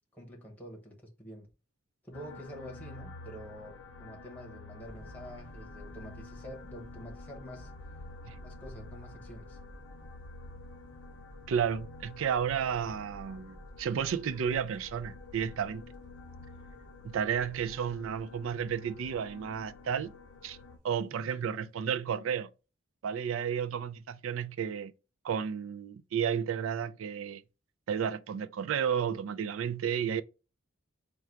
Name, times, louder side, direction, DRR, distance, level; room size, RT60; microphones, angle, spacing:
voice 1, 0.1-1.5 2.0-7.7 8.4-9.6, equal, 10° left, 0.9 m, -47 dB
sound 1, 2.1-20.8, left 3 dB, 75° left, 0.7 m, -50 dB
sound 2, 4.8-20.4, equal, 40° right, 1.0 m, -52 dB
voice 2, 11.5-15.8 17.0-20.1 20.4-20.6 20.8-22.5 23.0-24.9 25.2-27.4 27.9-30.2, right 7 dB, 75° right, 0.4 m, -32 dB
3.7 x 2.3 x 4.4 m
head